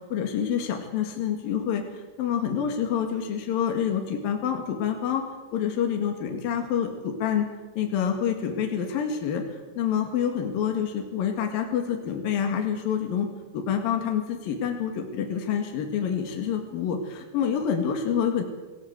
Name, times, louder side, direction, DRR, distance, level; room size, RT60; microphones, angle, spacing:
voice 1, 0.1-5.2 5.5-7.5 7.8-9.4 9.8-13.3 13.5-18.4, left 8 dB, 65° left, 3 dB, 3.6 m, -27 dB
26.0 x 17.0 x 8.1 m, 1.2 s
omnidirectional pair, 4.6 m